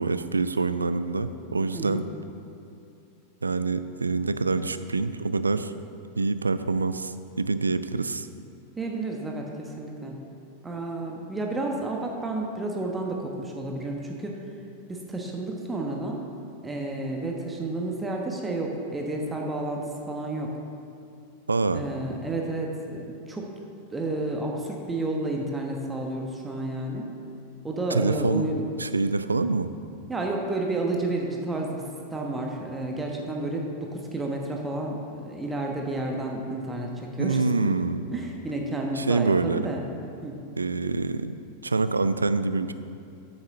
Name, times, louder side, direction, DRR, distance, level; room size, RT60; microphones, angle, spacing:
voice 1, 0.0-2.0 3.4-5.7 6.2-8.3 21.5-21.8 27.9-28.5 28.8-29.7 37.2-38.1 39.0-39.7 40.6-41.4 41.6-42.7, right 3 dB, 80° right, 12 dB, 0.3 m, -26 dB
voice 2, 8.8-10.2 10.6-14.4 14.9-16.2 16.6-20.5 21.7-23.5 23.9-27.1 27.6-28.6 30.1-31.8 32.1-37.8 38.1-39.8 40.2-40.4, right 2 dB, 10° right, 0 dB, 1.1 m, -31 dB
8.6 x 6.5 x 5.8 m, 2.5 s
figure-of-eight pair, 90°, 0 cm